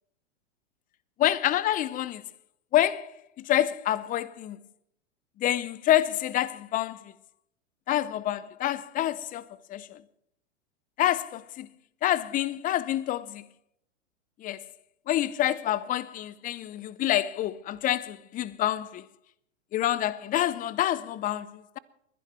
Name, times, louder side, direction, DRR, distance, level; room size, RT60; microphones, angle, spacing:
voice 1, 1.2-2.2 2.7-4.6 5.4-7.1 7.9-10.0 11.0-11.7 12.0-13.5 14.4-14.7 15.1-19.0 19.7-21.8, left 13 dB, 20° left, 0.7 m, -27 dB
21.0 x 10.5 x 6.0 m
hypercardioid pair, 105°, 37 cm